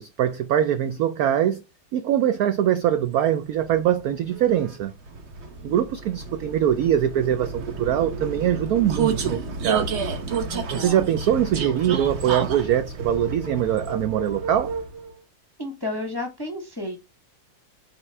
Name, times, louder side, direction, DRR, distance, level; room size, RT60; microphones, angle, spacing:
voice 1, 0.0-1.6 1.9-4.9 5.6-10.1 10.7-14.7, right 10 dB, 75° right, 0.8 m, -23 dB
Vehicle, 3.2-15.1, right 4 dB, 50° right, 0.9 m, -31 dB
voice 2, 10.5-11.1 15.6-17.0, left 1 dB, 20° left, 0.8 m, -32 dB
8.0 x 3.7 x 3.4 m
omnidirectional pair, 2.0 m